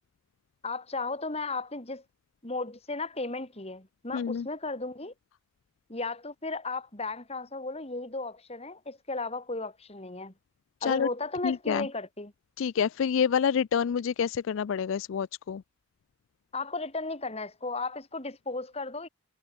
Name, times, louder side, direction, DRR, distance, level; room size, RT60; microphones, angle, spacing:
voice 1, 0.6-2.0 2.4-5.1 5.9-10.3 10.8-12.3 16.5-19.1, left 3 dB, 30° left, 2.4 m, -35 dB
voice 2, 4.1-4.5 10.8-11.1 11.4-11.9 12.6-15.6, left 7 dB, 60° left, 0.3 m, -27 dB
head